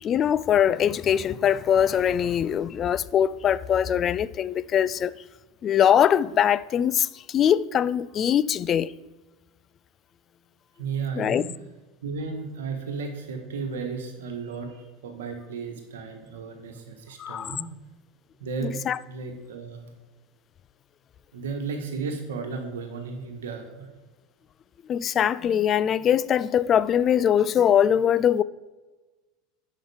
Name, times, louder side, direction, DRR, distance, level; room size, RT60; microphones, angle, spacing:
voice 1, 0.0-5.1 5.6-8.9 11.2-11.4 17.2-17.6 18.6-19.0 24.9-28.4, left 9 dB, 35° left, 0.4 m, -22 dB
voice 2, 10.8-11.5 12.0-17.7 18.4-19.9 21.3-23.9, right 5 dB, 70° right, 1.4 m, -34 dB
10.5 x 5.7 x 4.9 m
figure-of-eight pair, 75°, 0 cm